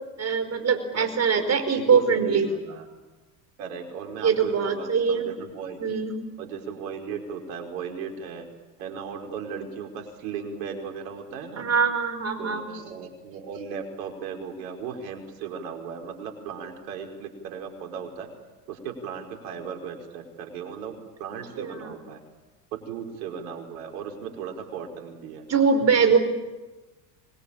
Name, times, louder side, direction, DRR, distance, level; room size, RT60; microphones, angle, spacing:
voice 1, 0.2-2.5 4.2-5.2 5.8-6.1 11.6-12.7 21.6-21.9 25.5-26.2, right 6 dB, 30° right, 8 dB, 5.0 m, -22 dB
voice 2, 1.7-2.9 3.6-5.8 6.4-8.5 8.8-11.6 12.4-18.3 18.7-20.9 21.2-22.2 22.7-25.5 26.1-26.2, right 6 dB, 75° right, 2 dB, 5.2 m, -36 dB
26.0 x 21.5 x 8.9 m, 1.1 s
hypercardioid pair, 95°, 50 cm